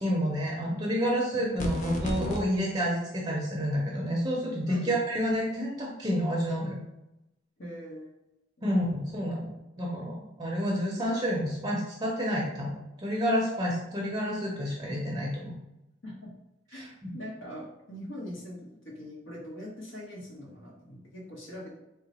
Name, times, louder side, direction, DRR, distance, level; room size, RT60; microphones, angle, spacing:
voice 1, 0.0-6.8 8.6-12.7 13.0-15.5 16.7-16.9, equal, 20° right, -3 dB, 0.5 m, -29 dB
sound 1, 1.6-2.4, equal, 40° left, 0.6 m, -32 dB
voice 2, 7.6-8.1 8.6-8.7 16.0-16.3 16.7-16.9 17.1-21.7, equal, 80° left, -4 dB, 1.0 m, -41 dB
3.8 x 2.1 x 4.1 m, 0.92 s
head